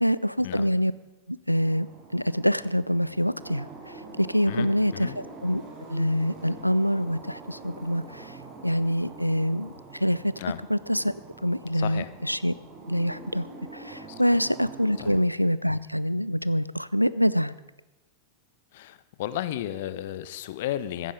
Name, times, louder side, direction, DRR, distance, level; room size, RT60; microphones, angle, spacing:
voice 1, 0.0-0.9 1.3-1.9 2.1-5.6 5.9-8.3 8.6-10.3 10.7-11.1 11.4-12.5 12.9-13.5 13.7-17.6, equal, 90° left, 17 dB, 0.4 m, -25 dB
sound 1, 1.5-15.1, right 3 dB, 30° right, 3.0 m, -45 dB
voice 2, 4.5-5.2 10.4-10.6 11.7-12.1 14.1-14.2 15.0-15.2 18.7-21.1, left 12 dB, 55° left, 14 dB, 0.7 m, -33 dB
15.5 x 10.5 x 5.1 m, 1.1 s
figure-of-eight pair, 90°, 0 cm